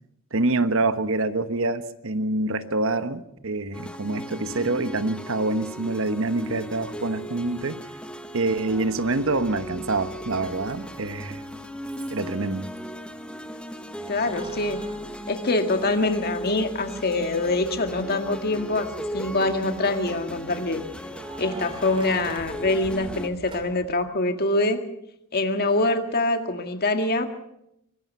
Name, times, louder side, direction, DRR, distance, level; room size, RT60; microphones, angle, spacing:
voice 1, 0.3-7.8 8.3-11.5 12.1-12.7, right 2 dB, 65° right, 11 dB, 1.2 m, -26 dB
sound 1, 3.7-23.3, equal, 5° left, 1.4 m, -37 dB
Keys jangling, 4.5-4.6 6.4-6.5 8.8-9.3 9.6-12.8 14.1-16.2 16.7-16.8 18.6-19.1 21.1-24.0, right 2 dB, 25° right, 2.7 m, -45 dB
voice 2, 14.1-14.8 15.3-18.9 19.1-20.8 21.4-24.8 25.3-27.3, left 2 dB, 45° left, 6 dB, 2.0 m, -24 dB
23.5 x 19.5 x 5.6 m, 0.79 s
head